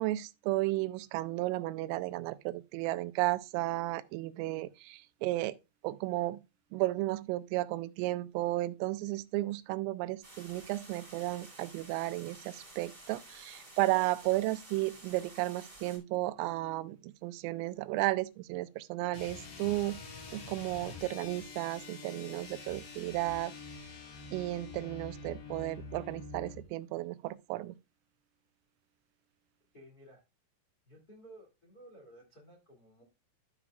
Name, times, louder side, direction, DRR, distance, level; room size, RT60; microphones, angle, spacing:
voice 1, 0.0-5.6 5.8-6.4 6.7-20.0 20.3-23.5 24.3-27.7, right 18 dB, 90° right, 3.3 m, -33 dB
sound 1, 10.2-16.0, right 2 dB, 15° right, 1.9 m, -52 dB
sound 2, 19.1-26.6, left 4 dB, 85° left, 5.7 m, -46 dB
voice 2, 29.7-30.2 30.8-33.0, right 1 dB, 35° left, 1.5 m, -55 dB
13.5 x 6.0 x 2.3 m
omnidirectional pair, 5.8 m